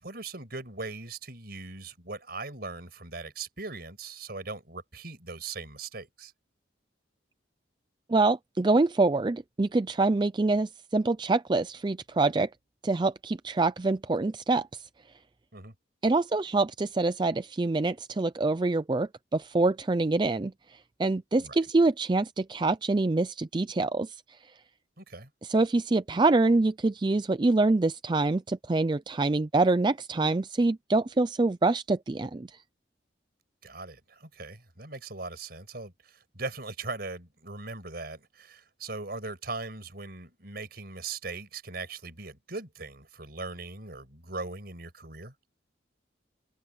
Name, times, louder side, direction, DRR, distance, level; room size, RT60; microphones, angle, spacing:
voice 1, 0.0-6.3 15.5-15.7 21.4-21.6 25.0-25.3 33.6-45.3, right 3 dB, 55° right, 5.7 m, -40 dB
voice 2, 8.1-12.5 12.8-14.9 16.0-24.4 25.4-32.6, right 3 dB, 25° right, 0.4 m, -25 dB
head